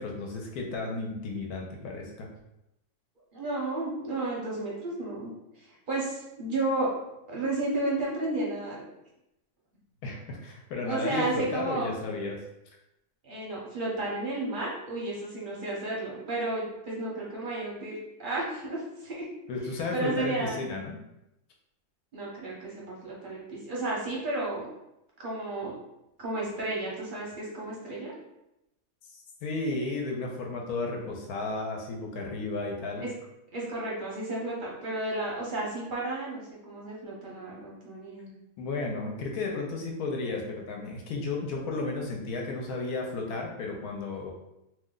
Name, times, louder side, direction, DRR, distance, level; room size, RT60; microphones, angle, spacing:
voice 1, 0.0-2.3 10.0-12.4 19.5-21.0 29.4-33.0 38.6-44.3, left 3 dB, 75° left, 1 dB, 1.0 m, -33 dB
voice 2, 3.3-5.3 5.6-6.9 7.3-8.8 10.9-11.9 13.2-19.3 19.9-20.6 22.1-24.7 25.2-25.7 26.2-28.1 33.5-38.3, right 2 dB, 45° right, -5 dB, 0.7 m, -32 dB
2.7 x 2.2 x 3.7 m, 0.87 s
omnidirectional pair, 1.7 m